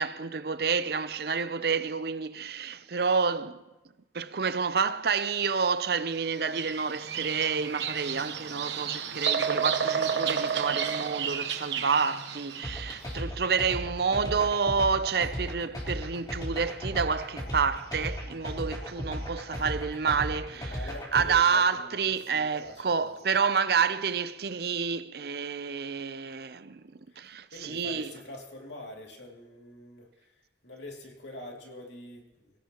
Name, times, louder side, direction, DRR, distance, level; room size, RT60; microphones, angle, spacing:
voice 1, 0.0-3.6 4.1-26.8 27.2-28.1, right 5 dB, 60° right, 0.6 m, -29 dB
Bird vocalization bird call bird song, 6.3-12.9, right 7 dB, 80° right, 1.1 m, -31 dB
sound 1, 12.6-21.3, equal, 25° left, 3.8 m, -35 dB
voice 2, 20.5-23.4 27.5-30.3 30.6-32.5, left 1 dB, 85° left, 2.6 m, -45 dB
24.0 x 17.0 x 3.0 m
head